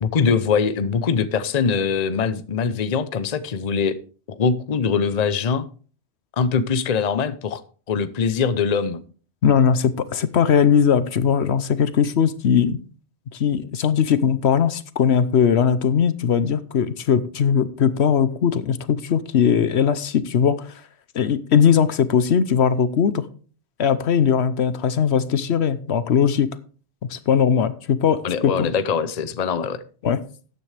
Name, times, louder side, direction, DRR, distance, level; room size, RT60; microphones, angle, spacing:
voice 1, 0.0-4.0 4.3-5.7 6.4-7.6 7.9-9.0 28.2-29.8, left 6 dB, 40° left, 0.7 m, -22 dB
voice 2, 9.4-12.8 13.3-20.7 21.1-23.3 23.8-26.5 27.1-28.7 30.0-30.2, left 7 dB, 70° left, 1.0 m, -19 dB
14.0 x 9.2 x 3.3 m
omnidirectional pair, 1.2 m